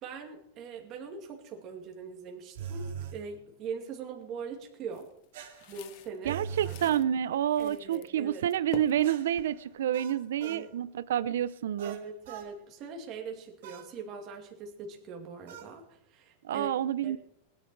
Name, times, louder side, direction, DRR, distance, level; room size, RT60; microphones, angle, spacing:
voice 1, 0.0-5.1 5.7-7.0 7.6-8.4 10.4-10.7 11.8-16.7 17.0-17.2, right 5 dB, 30° right, 2.5 m, -42 dB
sound 1, 2.6-3.2 5.3-6.9 9.0-10.7 11.8-12.5 13.6-13.9 15.5-15.7, right 7 dB, 65° right, 2.4 m, -42 dB
sound 2, 4.9-7.0 7.5-8.1 8.4-9.9, left 17 dB, 40° left, 0.5 m, -46 dB
voice 2, 6.3-12.0 16.4-17.2, right 10 dB, 80° right, 0.5 m, -29 dB
20.0 x 11.0 x 4.6 m
supercardioid pair, 165°, 0 cm